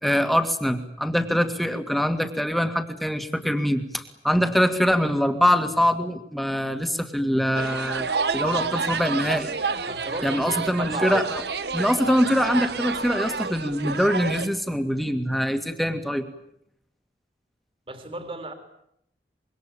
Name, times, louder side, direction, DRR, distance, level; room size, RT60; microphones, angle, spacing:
voice 1, 0.0-9.5 10.2-11.4 11.7-16.3, equal, ahead, 7 dB, 2.2 m, -24 dB
sound 1, 7.5-14.5, right 4 dB, 75° right, 1.6 m, -29 dB
voice 2, 9.9-11.2 17.9-18.5, right 2 dB, 30° right, 7 dB, 3.2 m, -34 dB
25.5 x 24.0 x 8.9 m, 0.75 s
head